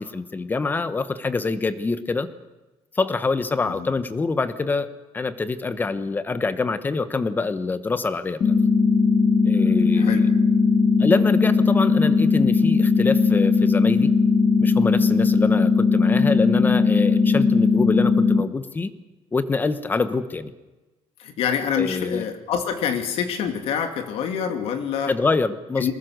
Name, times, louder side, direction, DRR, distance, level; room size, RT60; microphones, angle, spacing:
voice 1, 0.0-2.3 2.9-8.5 9.4-10.2 11.0-14.1 14.6-18.9 19.3-20.5 21.8-22.2 25.1-25.9, left 3 dB, 20° left, 12 dB, 1.1 m, -25 dB
sound 1, 8.4-18.4, left 4 dB, 40° left, 1.5 m, -18 dB
voice 2, 9.9-10.3 21.2-25.1 25.8-25.9, left 7 dB, 75° left, 6 dB, 2.8 m, -26 dB
23.5 x 20.5 x 6.7 m, 1.1 s
cardioid pair, 165°, 10 cm